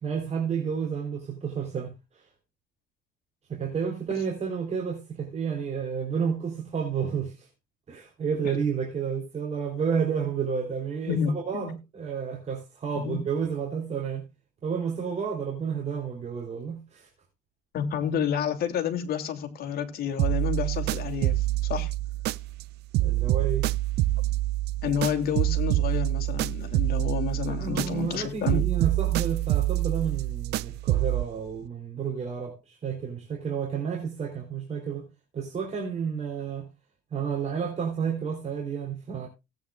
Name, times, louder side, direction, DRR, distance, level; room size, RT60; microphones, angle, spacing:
voice 1, 0.0-2.3 3.5-7.5 7.9-14.2 14.6-17.1 23.0-23.7 27.5-35.0 35.3-36.7 37.1-39.3, right 6 dB, 40° right, 3.6 m, -31 dB
voice 2, 11.1-11.7 13.0-13.2 17.7-21.9 24.8-28.6, left 8 dB, 65° left, 2.6 m, -30 dB
sound 1, 20.2-22.7 22.9-28.2 28.5-31.3, right 16 dB, 80° right, 0.5 m, -26 dB
18.0 x 9.1 x 2.3 m
cardioid pair, 110°, 17 cm